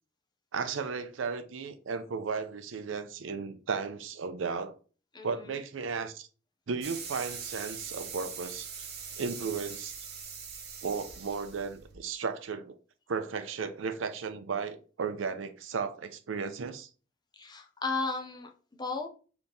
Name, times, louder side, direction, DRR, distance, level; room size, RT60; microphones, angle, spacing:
voice 1, 0.5-4.8 5.2-6.3 6.7-8.9 9.2-9.9 10.8-12.8 13.1-16.9, right 5 dB, 85° right, 0.5 m, -35 dB
voice 2, 5.1-5.6 17.3-19.1, left 4 dB, 20° left, 0.6 m, -35 dB
sound 1, 6.8-11.9, right 6 dB, 55° right, 0.9 m, -42 dB
3.5 x 2.9 x 3.9 m
head